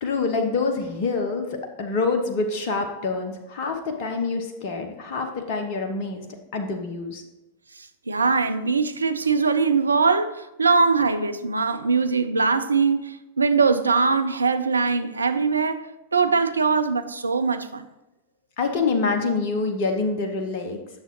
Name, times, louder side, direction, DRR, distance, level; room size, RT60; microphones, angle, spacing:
voice 1, 0.0-6.3 6.5-7.2 18.6-20.8, left 4 dB, 50° left, 0.9 m, -26 dB
voice 2, 7.8-15.9 16.1-17.9, right 4 dB, 75° right, 0.5 m, -22 dB
9.3 x 6.7 x 3.1 m
figure-of-eight pair, 90°, 0 cm